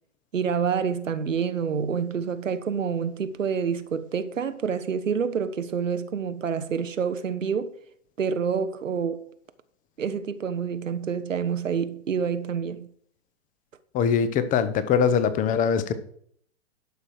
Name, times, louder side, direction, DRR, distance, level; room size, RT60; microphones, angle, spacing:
voice 1, 0.3-7.7 8.2-9.3 10.0-12.9, right 6 dB, 90° right, 0.8 m, -27 dB
voice 2, 13.9-15.9, left 7 dB, 20° left, 0.8 m, -22 dB
11.5 x 6.3 x 4.7 m
hypercardioid pair, 120°, 37 cm